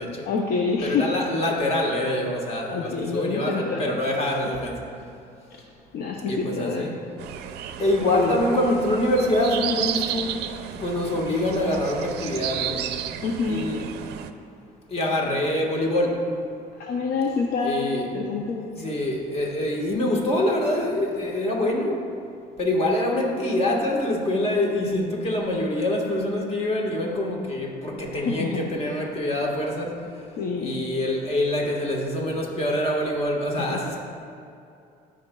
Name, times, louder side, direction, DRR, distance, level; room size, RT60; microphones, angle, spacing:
voice 1, 0.3-1.2 2.7-3.9 5.9-6.9 8.1-8.5 13.2-13.8 16.8-18.9 28.1-28.9 30.4-30.9 33.6-33.8, left 4 dB, 65° left, 1 dB, 0.6 m, -27 dB
voice 2, 0.8-4.8 6.3-7.0 7.8-10.3 10.7-12.9 13.5-13.8 14.9-16.2 17.6-18.0 18.8-22.1 22.6-30.2 30.6-34.0, left 1 dB, 35° left, 0 dB, 1.5 m, -25 dB
sound 1, 7.2-14.3, right 10 dB, 75° right, 0.5 m, -33 dB
15.0 x 5.0 x 2.3 m, 2.5 s
cardioid pair, 110°, 17 cm